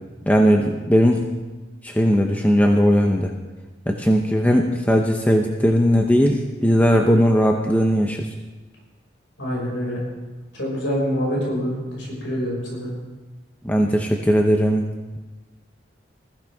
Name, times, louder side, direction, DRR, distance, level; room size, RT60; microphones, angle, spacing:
voice 1, 0.3-1.2 1.8-3.3 3.9-8.3 13.6-14.9, equal, 10° left, 2 dB, 0.8 m, -18 dB
voice 2, 9.4-10.0 10.6-12.9, equal, 80° left, -4 dB, 5.6 m, -26 dB
20.5 x 15.0 x 3.6 m, 1.2 s
head